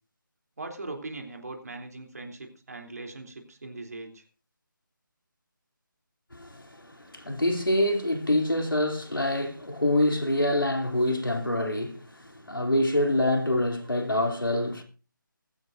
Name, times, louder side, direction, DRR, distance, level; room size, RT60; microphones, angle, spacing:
voice 1, 0.6-4.2, right 2 dB, 45° right, 3.4 m, -40 dB
voice 2, 6.3-14.8, left 1 dB, 80° left, 3.3 m, -26 dB
20.0 x 15.0 x 2.7 m
figure-of-eight pair, 155°, 11 cm